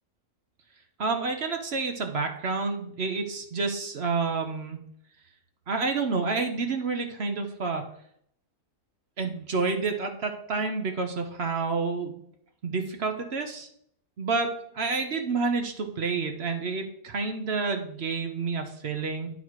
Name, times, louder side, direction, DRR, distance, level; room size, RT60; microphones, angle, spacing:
voice 1, 1.0-4.8 5.7-7.9 9.2-12.2 12.6-13.7 14.2-19.3, right 4 dB, 50° right, 5 dB, 1.0 m, -29 dB
10.0 x 4.1 x 4.6 m, 0.68 s
omnidirectional pair, 1.6 m